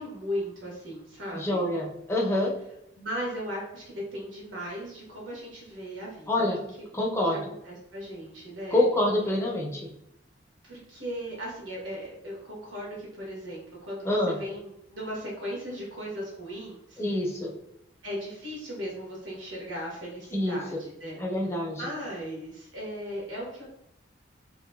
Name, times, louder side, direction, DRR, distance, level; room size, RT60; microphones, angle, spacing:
voice 1, 0.0-1.7 2.9-3.8 4.1-6.5 7.2-8.8 10.6-17.0 18.0-21.5 21.8-23.7, equal, 90° right, -3 dB, 1.1 m, -37 dB
voice 2, 1.3-2.5 6.3-6.6 6.9-7.4 8.7-9.9 14.1-14.3 17.0-17.5 20.3-20.6 21.2-21.8, left 1 dB, 15° left, -2 dB, 0.4 m, -26 dB
2.8 x 2.6 x 2.2 m, 0.80 s
head